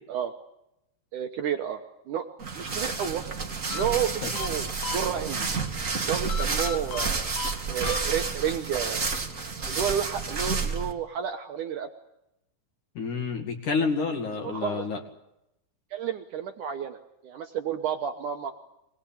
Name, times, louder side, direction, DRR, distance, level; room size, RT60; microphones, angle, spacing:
voice 1, 1.1-1.8 2.1-2.3 2.5-3.3 3.7-5.5 6.0-7.3 7.7-9.0 9.7-11.9 14.4-14.8 15.9-17.0 17.2-18.5, right 8 dB, 80° right, 6 dB, 1.8 m, -31 dB
sound 1, 2.4-10.9, right 4 dB, 35° right, 1.3 m, -30 dB
sound 2, 3.7-5.5 6.3-8.6, left 7 dB, 85° left, 4.5 m, -38 dB
voice 2, 12.9-15.0, left 4 dB, 50° left, 4 dB, 3.2 m, -29 dB
25.0 x 20.5 x 8.8 m, 0.85 s
omnidirectional pair, 5.3 m